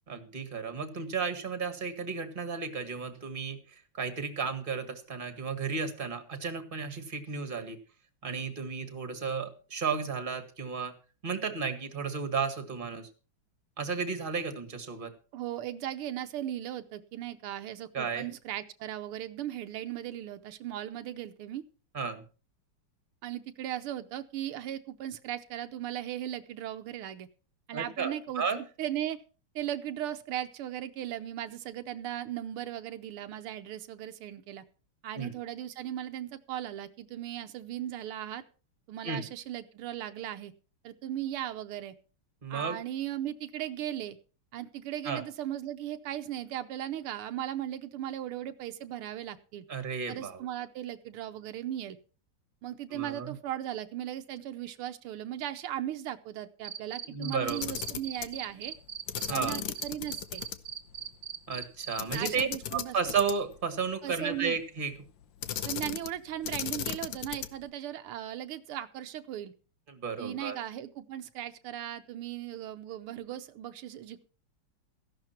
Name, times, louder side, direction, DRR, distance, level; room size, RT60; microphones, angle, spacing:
voice 1, 0.1-7.8 8.2-10.9 11.2-13.1 13.8-15.1 17.9-18.3 21.9-22.2 27.7-28.6 35.1-35.3 39.0-39.2 42.4-42.8 45.0-45.2 49.7-50.4 52.9-53.3 57.1-57.7 59.3-59.6 61.5-64.9 69.9-70.6, right 5 dB, 25° right, 8 dB, 1.8 m, -33 dB
voice 2, 15.3-21.6 23.2-27.3 27.7-28.4 28.8-29.2 29.5-34.6 35.0-38.4 38.9-40.5 40.8-41.9 42.5-44.2 44.5-49.6 50.1-52.0 52.6-58.7 59.3-60.4 62.1-63.0 64.0-64.6 65.6-69.5 70.2-74.3, right 12 dB, 85° right, 9 dB, 1.7 m, -37 dB
Cricket, 56.6-62.3, right 8 dB, 45° right, 1.7 m, -39 dB
Camera, 57.4-58.3 59.1-60.6 60.9-61.0 62.0-63.6 65.4-66.2 66.4-67.6, left 10 dB, 65° left, 1.5 m, -36 dB
14.5 x 11.5 x 4.4 m, 0.36 s
omnidirectional pair, 2.4 m